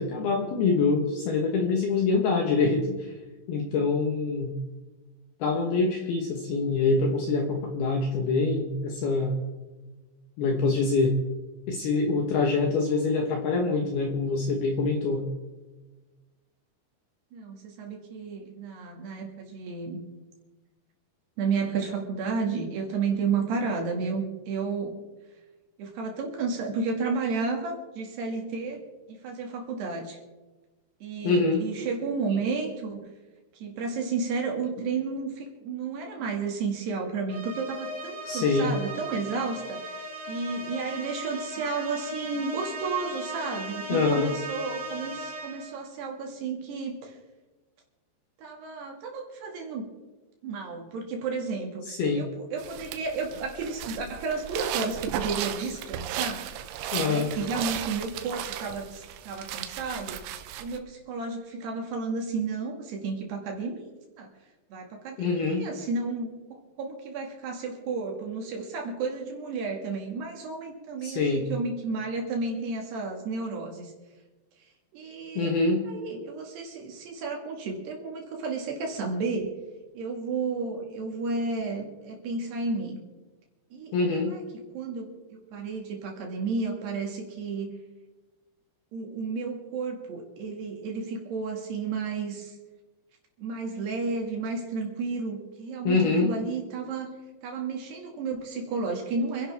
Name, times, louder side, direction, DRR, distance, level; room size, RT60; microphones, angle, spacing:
voice 1, 0.0-3.0 3.5-4.5 5.4-9.4 10.4-11.1 11.7-15.2 31.2-31.6 38.3-38.7 43.9-44.3 51.9-52.3 56.9-57.3 65.2-65.7 71.0-71.5 75.4-75.9 83.9-84.3 95.8-96.3, left 3 dB, 70° left, 2 dB, 2.6 m, -25 dB
voice 2, 17.3-20.0 21.4-25.0 25.8-28.8 29.1-30.2 31.0-33.0 33.5-40.0 40.3-47.2 48.4-49.9 50.4-56.5 57.0-60.2 60.6-63.8 64.2-64.3 64.7-66.3 66.8-73.9 74.9-75.5 75.9-79.5 79.9-83.0 83.7-84.4 84.7-87.7 88.9-92.6 93.4-97.1 97.4-99.5, right 4 dB, 60° right, 1 dB, 3.7 m, -32 dB
sound 1, 37.3-45.8, right 1 dB, 25° right, 5.3 m, -38 dB
sound 2, 52.6-60.8, right 11 dB, 85° right, 3.5 m, -35 dB
28.0 x 11.0 x 3.5 m, 1.2 s
omnidirectional pair, 6.0 m